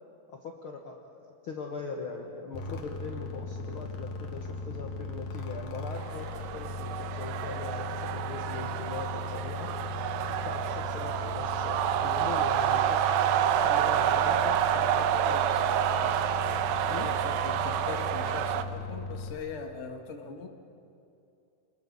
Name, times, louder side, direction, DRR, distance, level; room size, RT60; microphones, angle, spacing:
voice 1, 0.4-6.3 6.5-9.7 10.4-14.5 14.9-16.2 16.9-17.1, left 4 dB, 60° left, 1 dB, 1.4 m, -41 dB
sound 1, 2.5-19.3, left 3 dB, 80° left, 3.5 m, -38 dB
sound 2, 6.0-18.6, right 10 dB, 85° right, 2.5 m, -28 dB
voice 2, 15.2-15.6 16.9-20.5, left 5 dB, 40° left, 2 dB, 1.0 m, -41 dB
29.5 x 20.5 x 5.4 m, 2.6 s
omnidirectional pair, 4.1 m